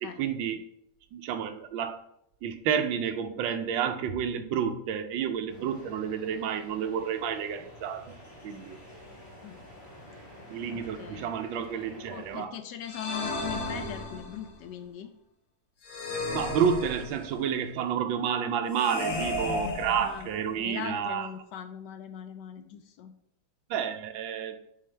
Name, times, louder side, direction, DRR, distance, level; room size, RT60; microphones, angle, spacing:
voice 1, 0.0-0.6 1.1-2.0 2.4-8.1 8.4-8.8 10.5-12.5 16.3-21.3 23.7-24.6, right 8 dB, 85° right, 9 dB, 1.4 m, -30 dB
sound 1, 5.5-12.5, equal, 10° left, 2.4 m, -49 dB
voice 2, 10.7-11.3 12.1-15.1 20.0-20.3 20.6-23.1, left 9 dB, 70° left, 8 dB, 1.1 m, -40 dB
sound 2, 12.8-14.5 15.8-17.5 18.7-20.6, left 2 dB, 85° left, 1.9 m, -34 dB
7.4 x 4.6 x 3.3 m, 0.73 s
omnidirectional pair, 2.1 m